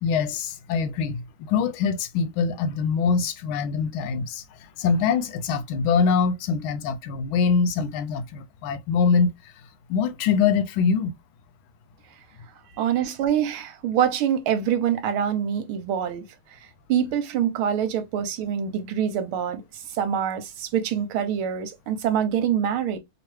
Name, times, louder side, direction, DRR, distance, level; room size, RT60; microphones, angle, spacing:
voice 1, 0.0-9.3 9.9-11.2, left 5 dB, 80° left, 1.4 m, -24 dB
voice 2, 12.8-16.2 16.9-19.6 19.9-23.0, right 9 dB, 80° right, 1.5 m, -25 dB
3.3 x 2.9 x 3.1 m
omnidirectional pair, 2.4 m